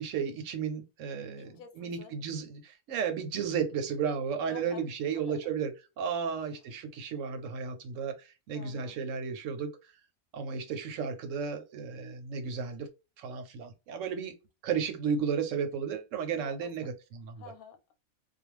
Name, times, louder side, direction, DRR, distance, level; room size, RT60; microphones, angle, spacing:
voice 1, 0.0-9.7 10.3-12.9 13.2-14.3 14.6-17.4, right 6 dB, 70° right, 0.9 m, -34 dB
voice 2, 1.3-2.1 4.5-4.8 5.1-5.4 8.5-9.0 16.4-16.9 17.3-18.0, left 6 dB, 90° left, 1.1 m, -49 dB
2.4 x 2.2 x 3.0 m
omnidirectional pair, 1.5 m